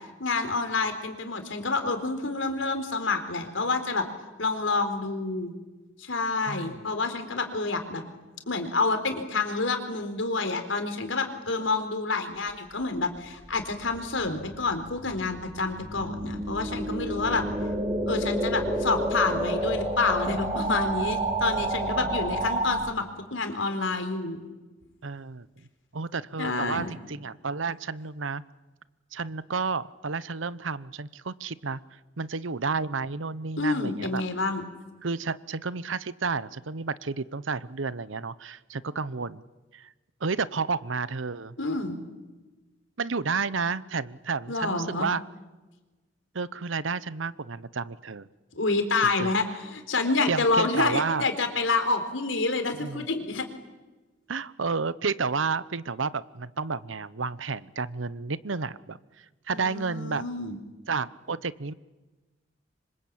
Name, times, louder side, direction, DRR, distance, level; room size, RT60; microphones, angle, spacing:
voice 1, 0.2-4.1 4.4-5.5 6.0-8.0 8.5-17.4 18.1-23.1 23.3-24.4 26.4-26.9 33.6-34.6 41.6-42.0 44.5-45.1 48.5-53.5 59.5-60.6, left 3 dB, 90° left, 7 dB, 4.0 m, -28 dB
sound 1, 13.6-22.9, right 1 dB, 25° right, 5.0 m, -30 dB
voice 2, 25.0-25.7 25.9-28.4 29.1-34.2 35.0-39.4 39.7-39.9 40.2-41.5 43.0-45.2 46.3-48.3 49.0-49.3 50.3-51.2 52.7-53.1 54.3-60.2 60.9-61.7, right 4 dB, 90° right, 17 dB, 0.9 m, -31 dB
27.0 x 25.5 x 8.8 m, 1.2 s
head